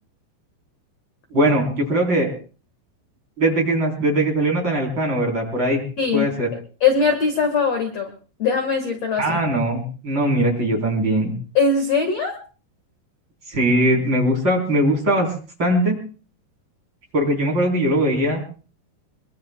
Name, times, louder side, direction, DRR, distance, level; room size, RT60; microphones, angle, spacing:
voice 1, 1.3-2.3 3.4-5.8 6.1-6.5 9.2-11.3 13.5-15.3 15.6-16.0 17.1-18.4, right 1 dB, 25° right, 0 dB, 4.2 m, -20 dB
voice 2, 6.0-6.3 6.8-8.1 8.4-9.4 11.5-12.4, left 5 dB, 50° left, 5 dB, 2.0 m, -20 dB
23.5 x 23.5 x 2.3 m, 0.38 s
omnidirectional pair, 5.1 m